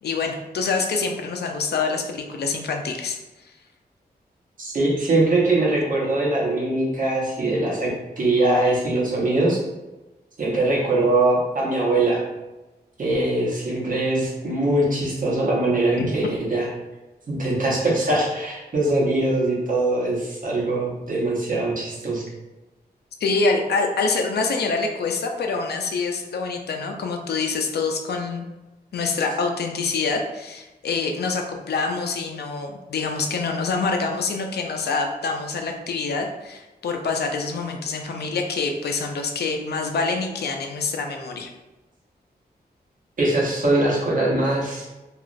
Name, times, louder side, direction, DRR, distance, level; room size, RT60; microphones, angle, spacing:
voice 1, 0.0-3.2 16.0-16.3 23.2-28.5 28.9-41.5, left 4 dB, 80° left, 3 dB, 0.4 m, -26 dB
voice 2, 4.6-9.6 10.4-12.2 13.0-16.7 17.3-22.3 43.2-44.9, right 2 dB, 55° right, -5 dB, 0.8 m, -22 dB
2.9 x 2.4 x 2.5 m, 1.1 s
wide cardioid pair, 135°, 17 cm